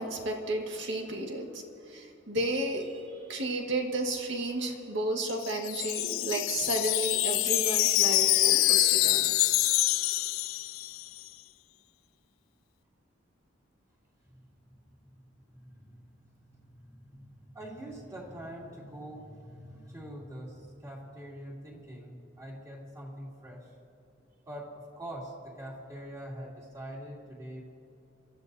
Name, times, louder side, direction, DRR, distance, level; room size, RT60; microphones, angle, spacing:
voice 1, 0.0-1.6 1.9-2.9 3.3-9.5, right 2 dB, 65° right, 1 dB, 1.9 m, -32 dB
Wind chime, 5.2-11.2, left 18 dB, 90° left, 0.3 m, -26 dB
voice 2, 15.5-23.7 24.5-27.6, right 1 dB, 15° right, -4 dB, 2.8 m, -44 dB
27.5 x 13.5 x 2.8 m, 2.9 s
head